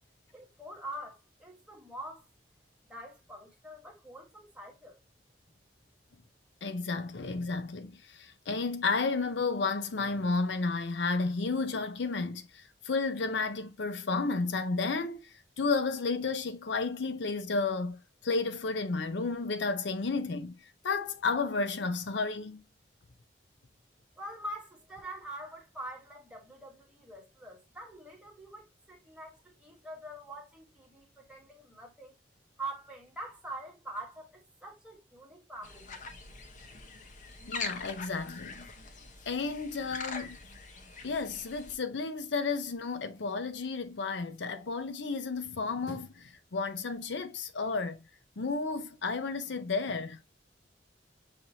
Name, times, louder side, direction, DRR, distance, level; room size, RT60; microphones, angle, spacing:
voice 1, 0.3-2.3 2.9-5.0 24.2-32.1 32.6-36.0, right 1 dB, 5° right, 1.4 m, -44 dB
voice 2, 6.6-15.2 15.6-20.6 20.8-22.6 37.5-38.6 39.3-40.4 41.0-48.1 48.4-50.2, left 4 dB, 75° left, 0.6 m, -32 dB
sound 1, 35.6-41.7, left 4 dB, 45° left, 0.8 m, -43 dB
5.8 x 2.7 x 2.8 m
head